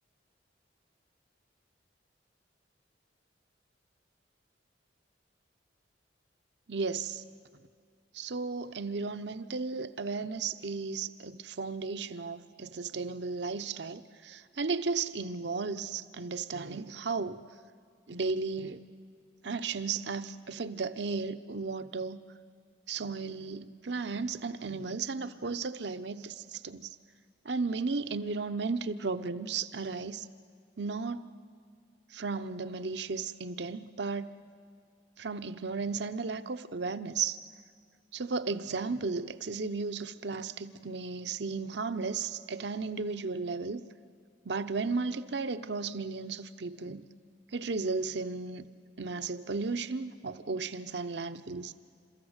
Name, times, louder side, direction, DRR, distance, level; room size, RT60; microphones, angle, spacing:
voice 1, 6.7-7.2 8.1-17.4 18.1-18.9 19.4-22.2 22.9-26.9 27.4-30.3 30.8-31.3 32.1-34.4 35.2-37.4 38.1-43.9 44.4-47.0 47.5-48.7 49.0-51.7, right 4 dB, 65° right, 0.8 m, -34 dB
29.0 x 14.0 x 8.1 m
head